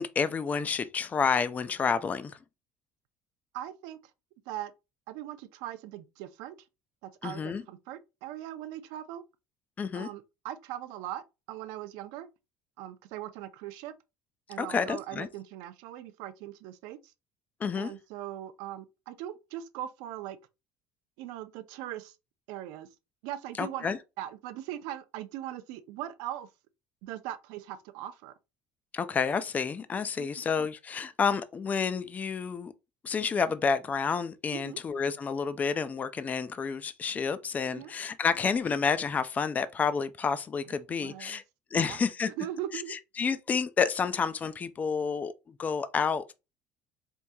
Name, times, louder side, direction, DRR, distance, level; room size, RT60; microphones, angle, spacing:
voice 1, 0.0-2.4 7.2-7.6 9.8-10.1 14.6-15.3 17.6-17.9 23.6-24.0 28.9-32.7 33.0-41.4 41.7-42.3 42.7-45.3 45.6-46.3, left 6 dB, 25° left, 0.3 m, -29 dB
voice 2, 3.5-4.0 4.5-4.7 5.1-6.6 7.0-9.2 9.9-11.2 11.5-12.3 12.8-13.9 14.5-17.0 17.7-20.4 21.2-22.1 22.5-22.9 23.2-26.5 27.0-28.3 30.2-30.4 34.5-34.8 37.7-37.9 40.7-41.4 41.8-42.0 42.4-42.9, right 12 dB, 85° right, 0.5 m, -40 dB
4.4 x 2.7 x 2.2 m
cardioid pair, 125°, 6 cm